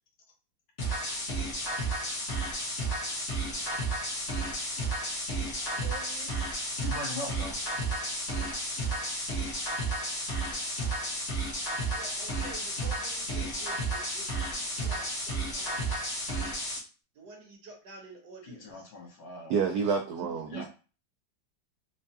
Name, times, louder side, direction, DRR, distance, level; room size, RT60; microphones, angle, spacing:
sound 1, 0.8-16.8, right 1 dB, 45° left, 1.1 m, -32 dB
voice 1, 5.7-6.4 11.9-15.8 17.1-18.9, right 2 dB, 60° right, 0 dB, 1.4 m, -49 dB
voice 2, 6.8-7.6 18.4-19.5 20.5-20.6, left 2 dB, 70° left, -1 dB, 1.8 m, -40 dB
voice 3, 19.5-20.6, right 6 dB, 80° right, 2 dB, 0.9 m, -28 dB
4.4 x 2.2 x 2.7 m, 0.35 s
omnidirectional pair, 2.2 m